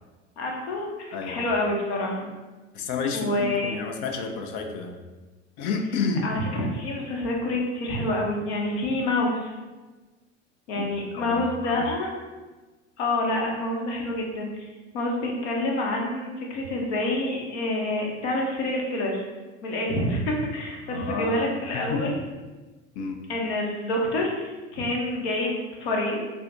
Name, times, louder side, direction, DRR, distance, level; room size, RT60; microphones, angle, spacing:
voice 1, 0.4-2.3 3.1-3.8 6.2-9.5 10.7-12.1 13.0-14.7 14.9-19.2 19.6-22.2 23.3-26.3, left 1 dB, 75° left, -1 dB, 1.0 m, -27 dB
voice 2, 2.7-4.9 5.6-6.3 10.7-10.8 11.1-11.8 20.8-22.1 23.0-23.2, left 4 dB, 60° left, 4 dB, 0.6 m, -30 dB
3.5 x 2.5 x 3.9 m, 1.2 s
hypercardioid pair, 85°, 35 cm